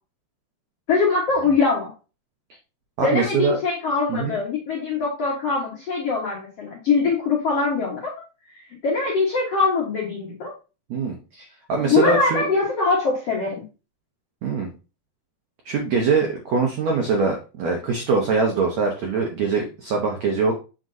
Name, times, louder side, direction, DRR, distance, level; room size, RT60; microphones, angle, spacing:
voice 1, 0.9-1.9 3.0-8.1 8.8-10.5 11.8-13.6, left 4 dB, 65° left, -3 dB, 1.6 m, -22 dB
voice 2, 3.0-3.6 4.1-4.4 10.9-12.4 14.4-14.7 15.6-20.5, right 4 dB, 90° right, 1 dB, 1.5 m, -23 dB
7.9 x 6.2 x 2.7 m, 0.32 s
omnidirectional pair, 4.8 m